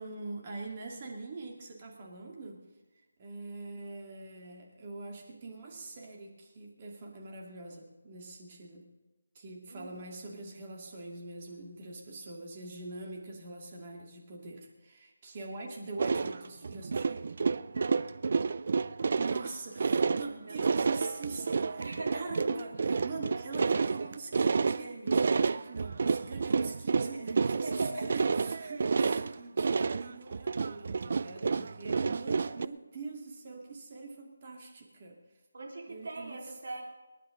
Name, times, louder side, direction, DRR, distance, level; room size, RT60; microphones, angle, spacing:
voice 1, 0.0-2.6 3.2-8.8 9.3-17.2 19.2-21.9 22.1-35.2 35.9-36.5, right 3 dB, 25° right, 0 dB, 2.4 m, -43 dB
voice 2, 9.7-10.1 17.7-18.1 20.4-21.1 21.4-22.3 27.0-27.1 27.6-28.1 35.5-36.8, right 2 dB, 60° right, -1 dB, 4.4 m, -42 dB
sound 1, 16.0-32.7, right 4 dB, 40° right, 0.4 m, -30 dB
28.5 x 10.0 x 3.9 m, 1.2 s
figure-of-eight pair, 170°, 0 cm